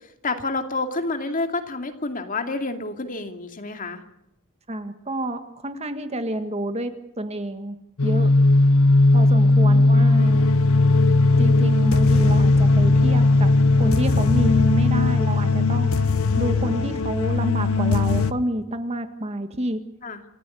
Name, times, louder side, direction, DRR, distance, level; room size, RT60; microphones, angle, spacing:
voice 1, 0.0-4.0 9.2-9.9 20.0-20.2, left 3 dB, 40° left, 5 dB, 2.5 m, -29 dB
voice 2, 4.7-7.8 8.0-8.3 9.1-10.5 11.4-15.9 16.4-19.8, right 1 dB, 30° right, 8 dB, 1.7 m, -29 dB
sound 1, 8.0-18.3, left 2 dB, 70° left, 1.0 m, -17 dB
28.0 x 15.0 x 8.5 m, 0.81 s
head